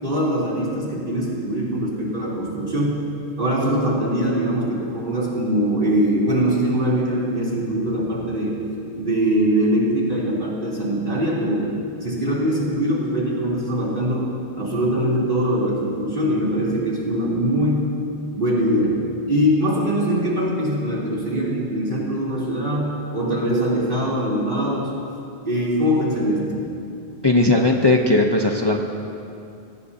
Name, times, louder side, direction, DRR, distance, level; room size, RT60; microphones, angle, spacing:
voice 1, 0.0-3.0 3.4-8.6 9.0-11.7 12.0-14.3 14.6-17.9 18.3-19.0 19.3-24.9 25.4-26.6, equal, 50° right, -6 dB, 3.7 m, -22 dB
voice 2, 27.2-28.8, left 2 dB, 25° left, 1 dB, 0.9 m, -17 dB
23.5 x 17.5 x 2.8 m, 2.5 s
omnidirectional pair, 1.1 m